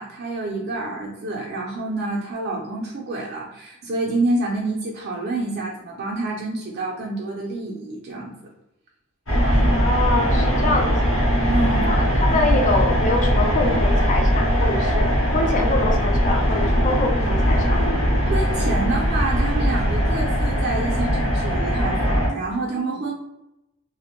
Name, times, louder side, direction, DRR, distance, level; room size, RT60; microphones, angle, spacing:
voice 1, 0.0-8.5 11.5-11.9 18.2-23.1, right 2 dB, 50° right, -3 dB, 0.4 m, -28 dB
sound 1, 9.3-22.3, equal, 60° left, 0.9 m, -20 dB
voice 2, 9.7-11.3 11.9-17.9, left 3 dB, 35° left, 2 dB, 0.4 m, -25 dB
2.5 x 2.1 x 2.9 m, 0.88 s
head